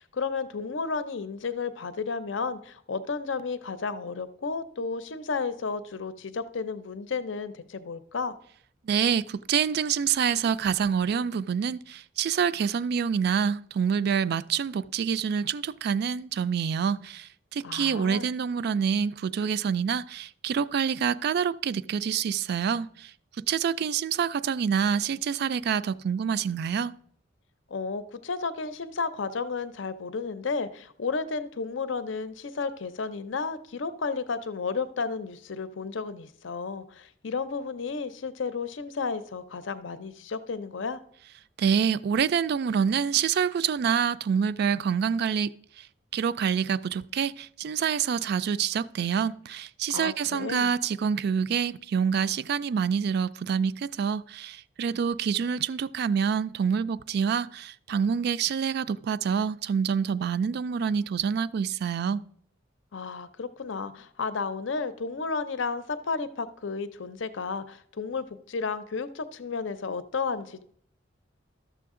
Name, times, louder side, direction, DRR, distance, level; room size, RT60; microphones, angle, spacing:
voice 1, 0.0-8.3 17.6-18.3 27.7-41.0 49.9-50.7 62.9-70.6, left 4 dB, 70° left, 0.6 m, -32 dB
voice 2, 8.8-23.1 23.4-26.9 41.6-45.9 46.1-62.2, right 7 dB, 55° right, 0.3 m, -27 dB
13.0 x 6.8 x 3.7 m
head